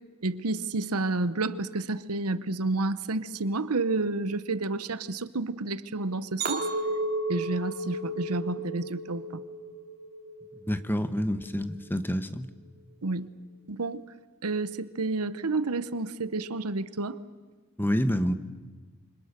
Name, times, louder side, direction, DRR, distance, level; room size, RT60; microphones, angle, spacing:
voice 1, 0.2-6.7 7.3-9.4 13.0-13.3 13.7-14.0 14.4-17.2, right 3 dB, 80° right, 14 dB, 1.0 m, -30 dB
Chink clink, 6.4-10.8 11.2-11.6, right 2 dB, 45° right, 2.9 m, -33 dB
voice 2, 10.6-12.5 17.8-18.3, equal, 10° left, 11 dB, 1.1 m, -28 dB
27.5 x 25.5 x 6.7 m, 1.3 s
head